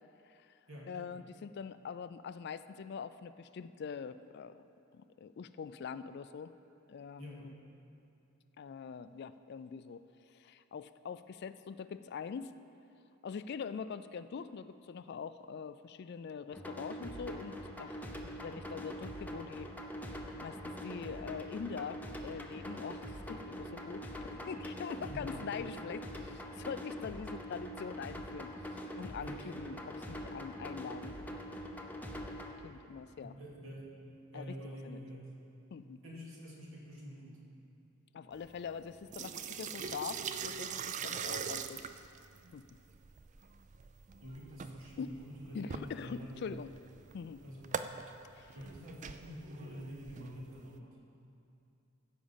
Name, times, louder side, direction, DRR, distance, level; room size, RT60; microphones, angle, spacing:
voice 1, 0.9-4.7 4.9-6.5 6.9-7.5 8.6-10.0 10.3-12.5 13.2-19.7 20.1-31.2 32.6-33.4 34.3-35.0 35.7-36.0 38.1-41.8 42.5-42.7 45.0-45.2 45.5-46.7 47.1-47.4 48.4-48.6, left 6 dB, 50° left, 13 dB, 0.3 m, -44 dB
voice 2, 7.2-7.6 25.0-25.4 29.2-29.5 33.2-33.9 34.3-35.3 36.0-37.4 44.2-46.4 47.4-47.8 48.5-51.0, equal, 70° right, -4 dB, 2.5 m, -47 dB
sound 1, 16.5-32.5, equal, 10° left, 0.7 m, -43 dB
sound 2, 38.3-50.8, right 6 dB, 35° right, 0.3 m, -43 dB
15.0 x 5.2 x 7.1 m, 2.6 s
head